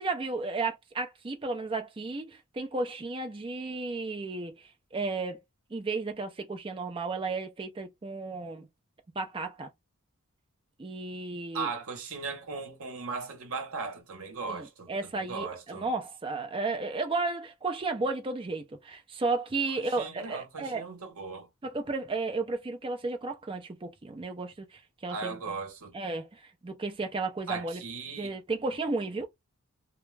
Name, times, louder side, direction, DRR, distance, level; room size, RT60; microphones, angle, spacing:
voice 1, 0.0-5.4 5.7-8.7 9.2-9.7 10.8-11.7 14.5-20.8 21.6-25.4 25.9-27.8 28.2-29.3, right 3 dB, 25° right, 0.4 m, -33 dB
voice 2, 11.5-15.9 19.8-21.5 25.1-26.0 27.5-28.3, right 4 dB, 70° right, 0.9 m, -38 dB
2.3 x 2.1 x 3.1 m
head